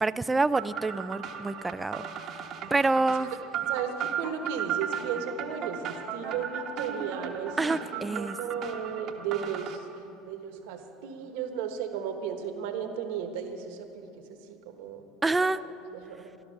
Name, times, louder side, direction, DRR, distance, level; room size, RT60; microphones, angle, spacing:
voice 1, 0.0-2.0 2.3-2.4 2.7-3.3 7.6-8.4 15.2-15.6, right 3 dB, 15° right, 15 dB, 0.3 m, -27 dB
sound 1, 0.5-9.8, right 8 dB, 50° right, 1.0 m, -36 dB
voice 2, 3.7-15.5 15.9-16.4, right 7 dB, 80° right, 6 dB, 1.3 m, -35 dB
13.0 x 12.0 x 6.5 m, 2.8 s
supercardioid pair, 110°, 0 cm